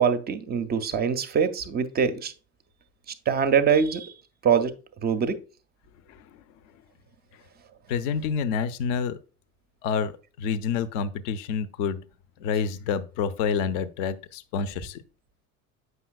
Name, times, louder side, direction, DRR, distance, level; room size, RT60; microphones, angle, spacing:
voice 1, 0.0-2.3 3.3-4.1 4.4-4.7 5.0-5.4, right 7 dB, 20° right, 10 dB, 0.5 m, -23 dB
voice 2, 7.9-9.2 9.8-10.1 10.4-12.0 12.4-15.0, left 6 dB, 50° left, 15 dB, 0.6 m, -28 dB
7.9 x 5.5 x 2.3 m, 0.36 s
figure-of-eight pair, 70°, 47 cm